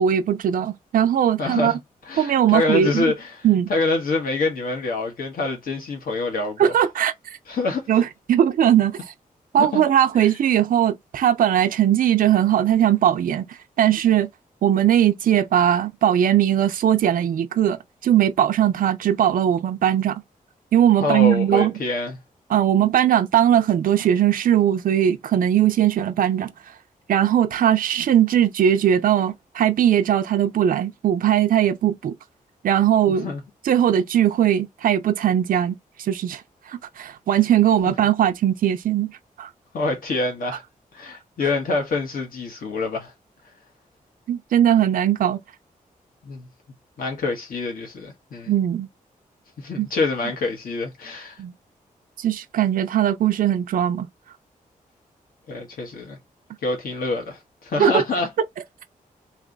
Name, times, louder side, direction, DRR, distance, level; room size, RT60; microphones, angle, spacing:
voice 1, 0.0-1.7 2.2-3.0 3.4-3.7 6.6-7.1 7.9-9.0 9.5-14.3 14.6-20.2 20.7-21.7 22.5-26.5 27.1-32.1 32.6-33.3 33.6-36.4 36.7-39.1 39.4-39.5 44.3-45.4 48.5-48.9 49.8-49.9 51.4-51.5 52.2-54.1 57.8-58.0, right 10 dB, 75° right, 0.5 m, -19 dB
voice 2, 1.4-1.8 2.0-6.7 7.5-7.9 9.6-9.8 10.1-10.3 21.0-22.2 33.1-33.4 39.7-40.6 40.9-43.1 46.2-46.5 47.0-48.5 49.6-51.4 55.5-56.2 56.6-58.3, left 3 dB, 75° left, 1.5 m, -26 dB
3.3 x 2.9 x 4.0 m
wide cardioid pair, 140°, 15 cm